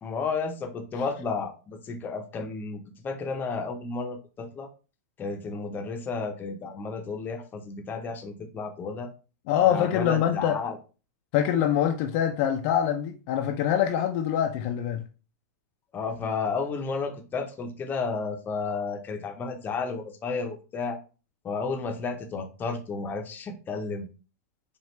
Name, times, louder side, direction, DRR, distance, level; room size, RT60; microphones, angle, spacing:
voice 1, 0.0-4.7 5.2-9.1 9.6-10.8 15.9-21.0 21.4-24.1, left 4 dB, 20° left, 0.7 m, -32 dB
voice 2, 9.5-10.6 11.3-15.0, left 10 dB, 50° left, 0.5 m, -24 dB
5.0 x 2.4 x 3.1 m
hypercardioid pair, 130°, 9 cm